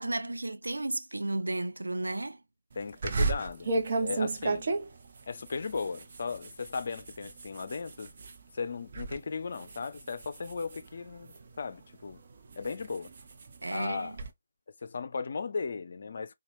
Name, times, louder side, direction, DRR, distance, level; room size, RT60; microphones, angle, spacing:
voice 1, 0.0-2.4 13.6-14.2, right 2 dB, 85° right, 0.5 m, -33 dB
voice 2, 2.8-4.7 5.3-8.1 8.5-12.2 12.6-13.1 13.7-14.2 14.8-16.3, left 5 dB, 55° left, 0.5 m, -36 dB
sound 1, 3.0-8.4 8.8-9.2 9.5-11.6 12.1-14.3, right 3 dB, 50° right, 0.7 m, -34 dB
4.3 x 2.3 x 2.5 m
figure-of-eight pair, 155°, 0 cm